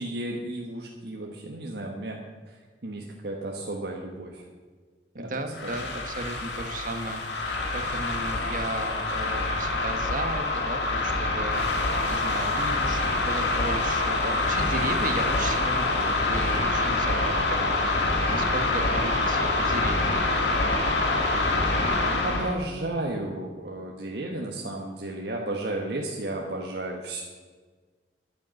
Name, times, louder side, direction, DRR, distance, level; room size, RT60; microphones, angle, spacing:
voice 1, 0.0-2.2 2.5-4.4 5.1-5.3 5.6-5.8 21.9-27.2, right 1 dB, 65° right, -1 dB, 1.4 m, -33 dB
voice 2, 5.2-20.2, right 2 dB, 50° right, 6 dB, 1.5 m, -35 dB
sound 1, 5.5-22.6, left 2 dB, 75° left, 2.2 m, -26 dB
11.0 x 9.3 x 7.7 m, 1.4 s
head